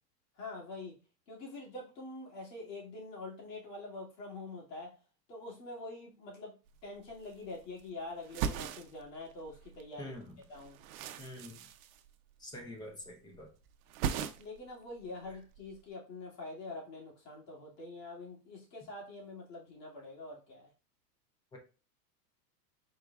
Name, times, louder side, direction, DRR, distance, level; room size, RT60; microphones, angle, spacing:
voice 1, 0.4-1.0 1.3-5.0 5.3-6.6 6.8-10.2 10.5-10.8 14.4-20.7, left 2 dB, 80° left, -3 dB, 2.5 m, -45 dB
sound 1, 6.7-6.8 7.0-7.9 8.2-9.8 10.1-12.6 12.9-13.4 13.7-14.7 15.0-15.8, right 8 dB, 60° right, 0.6 m, -39 dB
voice 2, 10.0-10.3 11.2-11.6 12.4-13.5 21.5-21.6, left 1 dB, 10° left, 3 dB, 0.4 m, -45 dB
4.7 x 3.8 x 2.3 m, 0.33 s
supercardioid pair, 135°, 48 cm